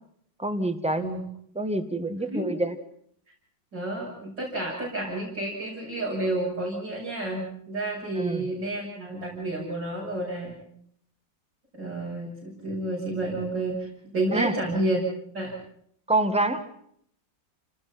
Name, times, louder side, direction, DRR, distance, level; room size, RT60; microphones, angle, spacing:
voice 1, 0.4-1.0 1.6-2.8 8.2-8.4 14.3-14.6 16.1-16.6, right 2 dB, 5° right, 8 dB, 1.6 m, -26 dB
voice 2, 3.7-10.6 11.7-15.0 15.3-15.5, right 1 dB, 75° right, -5 dB, 7.4 m, -30 dB
29.5 x 19.5 x 5.8 m, 0.67 s
omnidirectional pair, 2.0 m